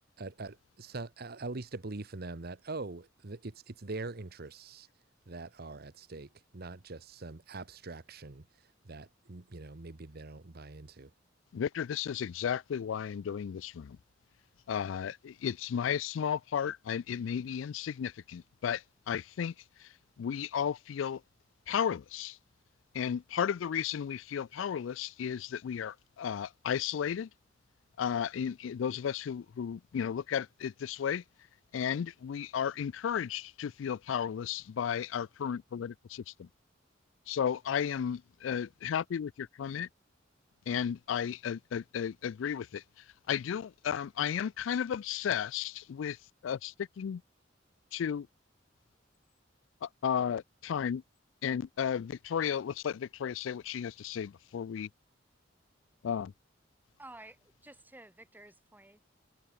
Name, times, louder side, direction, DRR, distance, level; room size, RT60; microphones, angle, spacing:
voice 1, 0.2-4.9 5.3-11.1, right 3 dB, 55° right, 1.1 m, -43 dB
voice 2, 11.5-14.0 14.7-19.5 19.8-19.9 20.2-21.2 21.7-22.4 22.9-27.3 28.0-31.2 31.7-36.5 37.3-39.9 40.7-42.8 43.3-46.2 46.4-47.2 47.9-48.3 49.8-51.0 51.4-54.9 56.0-56.3, left 8 dB, 85° left, 0.4 m, -34 dB
voice 3, 57.0-59.0, right 1 dB, 10° right, 5.2 m, -52 dB
head